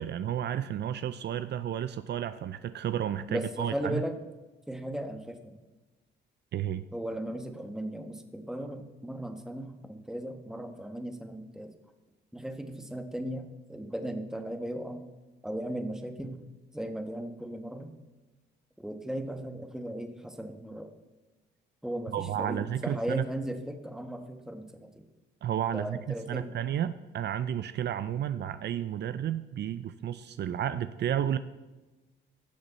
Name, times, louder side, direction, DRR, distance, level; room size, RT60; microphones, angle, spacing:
voice 1, 0.0-4.0 6.5-6.8 22.1-23.2 25.4-26.0 26.3-31.4, right 10 dB, 60° right, 13 dB, 0.5 m, -32 dB
voice 2, 3.3-4.2 4.7-5.6 6.9-11.7 12.3-15.0 15.4-16.4 16.7-17.9 18.8-20.9 21.8-24.9 25.7-26.5, right 1 dB, 5° right, 6 dB, 1.2 m, -37 dB
16.5 x 6.8 x 4.1 m, 1.2 s
cardioid pair, 90°, 20 cm